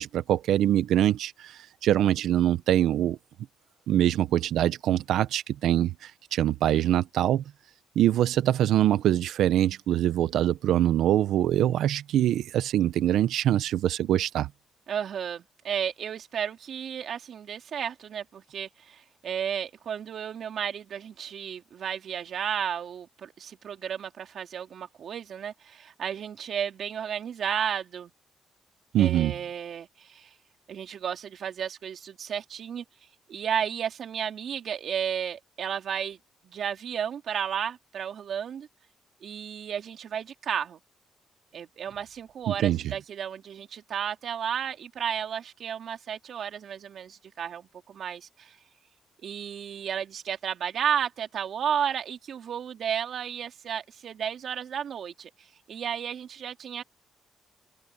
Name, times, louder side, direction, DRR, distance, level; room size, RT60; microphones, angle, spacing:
voice 1, 0.0-3.2 3.9-7.4 7.9-14.5 28.9-29.3 42.5-42.9, right 12 dB, 80° right, 1.1 m, -24 dB
voice 2, 14.9-28.1 29.0-30.3 30.7-32.8 33.3-36.2 36.4-38.7 39.2-40.8 41.5-48.6 49.2-55.3 55.7-56.8, right 8 dB, 65° right, 3.0 m, -33 dB
cardioid pair, 70°, 0 cm